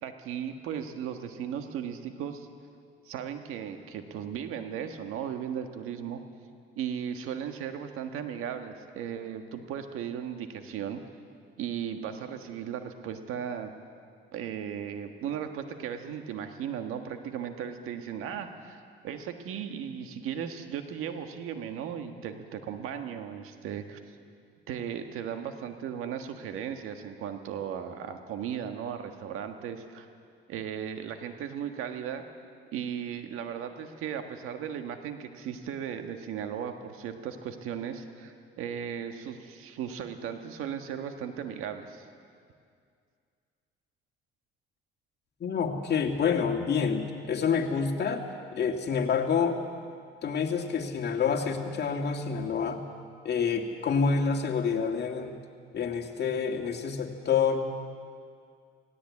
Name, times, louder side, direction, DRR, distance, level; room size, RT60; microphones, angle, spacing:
voice 1, 0.0-2.5 3.0-6.2 6.8-11.0 11.6-13.7 14.3-24.0 24.7-30.1 30.5-32.2 32.7-42.1, right 8 dB, 80° right, 6 dB, 1.6 m, -36 dB
voice 2, 45.4-48.2 48.5-49.6 50.2-52.8 53.2-55.3 55.7-57.6, left 6 dB, 50° left, 3 dB, 2.2 m, -28 dB
17.5 x 17.5 x 8.6 m, 2.3 s
cardioid pair, 80°, 21 cm